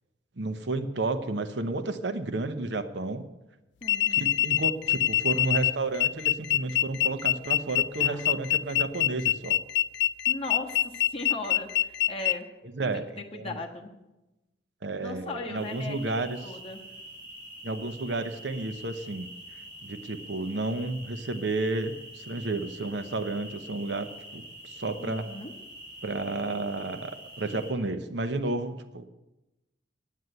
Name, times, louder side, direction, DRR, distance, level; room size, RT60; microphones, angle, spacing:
voice 1, 0.4-3.3 4.1-9.6 12.7-13.1 13.3-13.6 14.8-16.4 17.6-19.3 19.8-25.3 26.0-29.0, right 2 dB, 65° right, 10 dB, 0.8 m, -31 dB
sound 1, 3.8-12.3, left 13 dB, 65° left, 0.4 m, -25 dB
voice 2, 3.8-4.3 8.0-8.2 10.3-12.5 12.8-13.0 13.3-14.0 15.0-16.0 16.4-16.8 25.0-25.5, left 2 dB, 30° left, 1 dB, 1.4 m, -38 dB
sound 2, 15.5-27.7, right 1 dB, 50° right, 4.2 m, -46 dB
9.5 x 9.3 x 7.8 m, 1.0 s
head